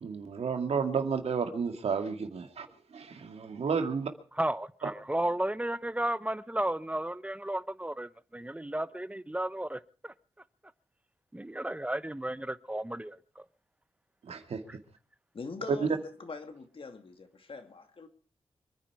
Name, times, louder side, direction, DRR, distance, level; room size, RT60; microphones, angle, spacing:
voice 1, 0.0-4.1 4.8-4.9 14.2-14.6 15.8-15.9, right 6 dB, 85° right, 2.2 m, -32 dB
voice 2, 4.4-10.1 11.3-13.2, right 1 dB, 10° right, 0.9 m, -33 dB
voice 3, 15.3-18.1, left 4 dB, 60° left, 2.5 m, -43 dB
26.0 x 10.0 x 4.8 m
cardioid pair, 65°, 10 cm